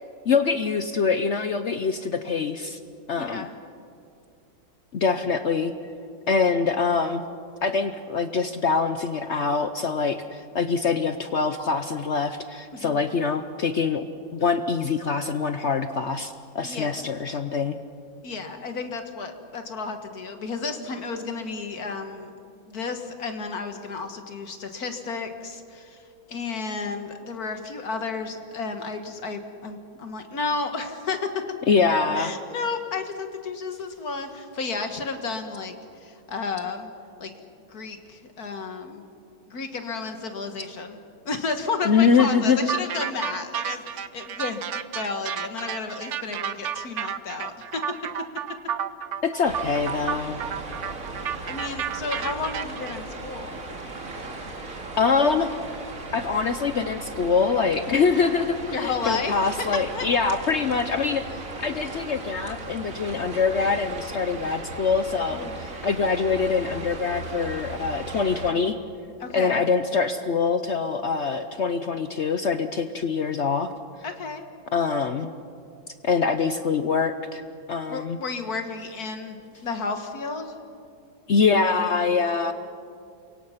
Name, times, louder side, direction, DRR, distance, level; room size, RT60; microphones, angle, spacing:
voice 1, 0.3-2.8 3.1-3.5 4.9-5.7 6.3-7.2 7.6-14.0 14.3-17.8 31.7-32.3 41.8-42.6 49.2-50.4 54.6-55.5 56.1-61.2 61.6-68.8 69.3-73.7 74.7-75.3 76.0-77.4 77.7-78.2 81.3-82.5, left 5 dB, 70° left, 9 dB, 0.6 m, -24 dB
voice 2, 3.2-3.6 12.7-13.1 16.6-17.0 18.2-22.3 22.7-31.4 32.1-36.9 37.2-37.3 37.7-39.0 39.5-41.0 41.3-44.6 44.9-48.0 51.5-53.6 58.7-60.1 61.9-62.0 65.3-65.6 69.2-69.6 74.0-74.4 77.9-79.4 79.6-80.5, left 4 dB, 50° left, 6 dB, 1.8 m, -32 dB
sound 1, 42.7-53.0, right 8 dB, 75° right, 0.6 m, -31 dB
sound 2, 49.4-68.5, right 2 dB, 45° right, 2.5 m, -37 dB
29.0 x 23.5 x 5.8 m, 2.4 s
omnidirectional pair, 2.1 m